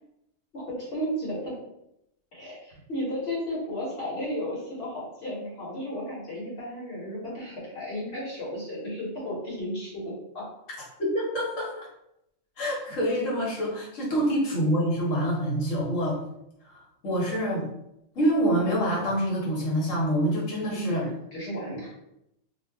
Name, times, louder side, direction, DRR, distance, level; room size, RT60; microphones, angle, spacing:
voice 1, 0.5-1.5 2.3-10.4 20.7-21.9, equal, 55° left, -5 dB, 1.2 m, -34 dB
voice 2, 11.0-11.9 12.6-16.2 17.0-17.7 18.1-21.0, equal, 75° left, -4 dB, 1.3 m, -26 dB
2.6 x 2.3 x 3.4 m, 0.81 s
omnidirectional pair, 1.3 m